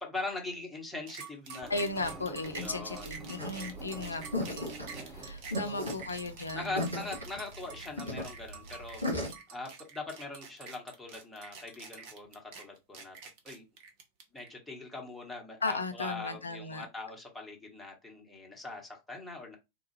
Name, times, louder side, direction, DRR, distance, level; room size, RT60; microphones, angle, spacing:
voice 1, 0.0-1.7 2.6-3.1 4.1-4.2 5.6-5.9 6.5-9.0 9.5-13.2 13.4-13.6 14.3-19.6, left 3 dB, 5° left, 1.1 m, -41 dB
sound 1, 1.1-14.5, right 6 dB, 45° right, 0.8 m, -47 dB
Engine, 1.6-7.1, right 3 dB, 15° right, 0.7 m, -48 dB
voice 2, 1.7-6.9 15.6-16.8, left 3 dB, 80° left, 0.3 m, -36 dB
sound 2, 3.4-9.3, left 1 dB, 85° right, 2.1 m, -36 dB
3.8 x 2.3 x 3.0 m
figure-of-eight pair, 90°, 0 cm